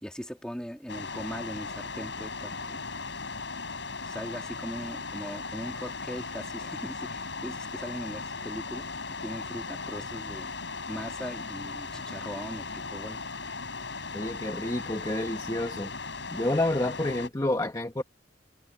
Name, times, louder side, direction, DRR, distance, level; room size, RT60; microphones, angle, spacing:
voice 1, 0.0-2.9 4.0-8.9 9.2-10.5 10.9-13.2, equal, 5° left, 3.7 m, -40 dB
sound 1, 0.9-17.3, left 4 dB, 75° left, 6.3 m, -37 dB
voice 2, 14.1-15.9 16.3-18.0, left 1 dB, 20° left, 1.3 m, -29 dB
head